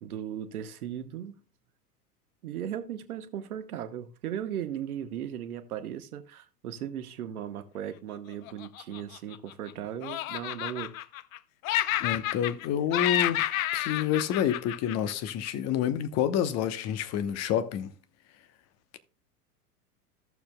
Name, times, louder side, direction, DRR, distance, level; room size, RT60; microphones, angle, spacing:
voice 1, 0.0-1.4 2.4-10.9, right 10 dB, 70° right, 1.2 m, -37 dB
Laughter, 8.5-9.7 10.0-11.4 11.6-12.7 12.9-15.5, left 14 dB, 60° left, 0.6 m, -30 dB
voice 2, 12.0-13.4 13.7-17.9, left 9 dB, 35° left, 1.0 m, -28 dB
14.0 x 7.0 x 2.2 m
hypercardioid pair, 100°, 47 cm